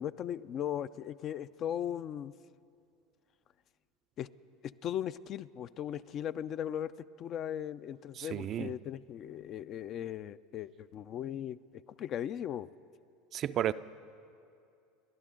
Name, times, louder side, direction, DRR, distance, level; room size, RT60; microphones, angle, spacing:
voice 1, 0.0-2.3 4.2-4.3 4.6-6.9 7.2-12.7, left 10 dB, 45° left, 0.4 m, -38 dB
voice 2, 8.2-8.7 13.3-13.7, right 11 dB, 45° right, 0.4 m, -32 dB
29.0 x 12.0 x 3.8 m
hypercardioid pair, 85°, 0 cm